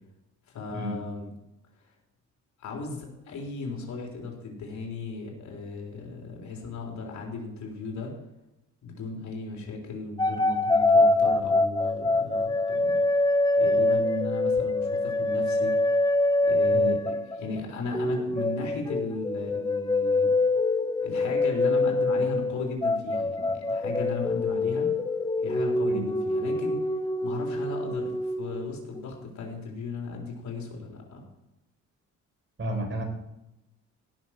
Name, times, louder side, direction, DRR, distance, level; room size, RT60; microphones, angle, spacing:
voice 1, 0.5-1.3 2.6-8.1 8.8-13.0 13.6-15.7 16.5-20.3 21.0-24.9 25.4-26.8 27.2-31.2, left 3 dB, 70° left, 0 dB, 3.9 m, -36 dB
sound 1, 10.2-17.6 17.9-29.0, left 2 dB, 15° left, 0.8 m, -25 dB
voice 2, 32.6-33.0, right 1 dB, 40° right, 3 dB, 4.2 m, -32 dB
16.5 x 6.6 x 6.0 m, 0.91 s
cardioid pair, 90°, 30 cm